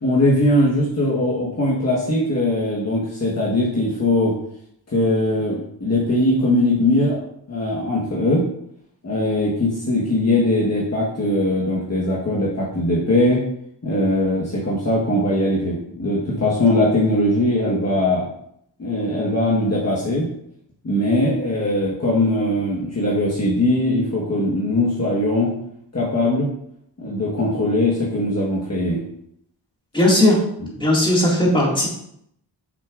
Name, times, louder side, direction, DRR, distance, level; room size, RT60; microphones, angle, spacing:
voice 1, 0.0-4.3 4.9-7.2 7.5-8.4 9.0-13.4 13.8-18.3 18.8-20.3 20.8-25.5 25.9-26.5 27.0-29.0, left 1 dB, 35° left, -6 dB, 1.4 m, -20 dB
voice 2, 29.9-30.4 30.8-31.9, left 1 dB, 10° left, -4 dB, 2.1 m, -17 dB
7.0 x 6.1 x 2.5 m, 0.73 s
wide cardioid pair, 105°, 44 cm